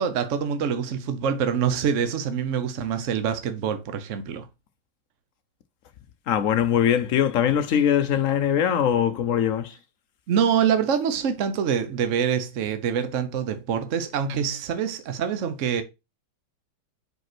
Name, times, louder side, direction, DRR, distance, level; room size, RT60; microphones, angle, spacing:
voice 1, 0.0-4.5 10.3-15.8, right 7 dB, 60° right, 0.8 m, -25 dB
voice 2, 6.3-9.8, left 9 dB, 75° left, 0.7 m, -22 dB
5.2 x 5.2 x 5.9 m
omnidirectional pair, 2.2 m